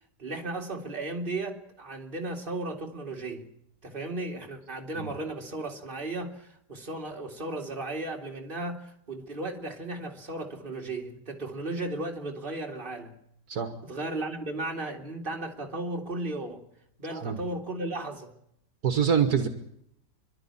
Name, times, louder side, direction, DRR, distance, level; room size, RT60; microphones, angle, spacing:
voice 1, 0.2-3.5 3.8-13.2 13.8-16.6 17.0-18.3, right 2 dB, 30° right, 2.6 m, -35 dB
voice 2, 18.8-19.5, right 7 dB, 70° right, 1.9 m, -25 dB
27.5 x 12.0 x 10.0 m
omnidirectional pair, 1.7 m